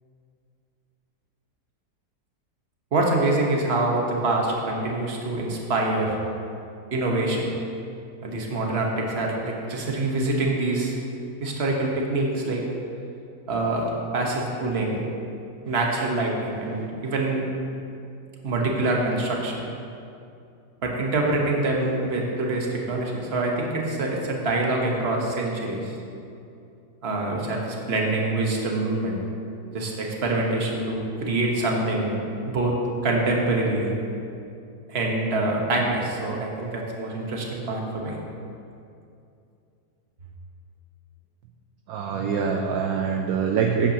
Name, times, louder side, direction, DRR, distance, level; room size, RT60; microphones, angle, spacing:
voice 1, 2.9-6.1 6.9-7.4 8.2-10.9 11.4-12.6 13.5-15.0 15.6-17.4 18.4-19.6 20.8-25.9 27.0-29.2 29.7-32.2 32.5-32.7 33.0-33.9 34.9-38.2, right 2 dB, 40° right, -1 dB, 1.3 m, -25 dB
voice 2, 41.9-43.9, right 6 dB, 70° right, 2 dB, 1.0 m, -24 dB
11.0 x 8.9 x 2.9 m, 2.6 s
omnidirectional pair, 1.8 m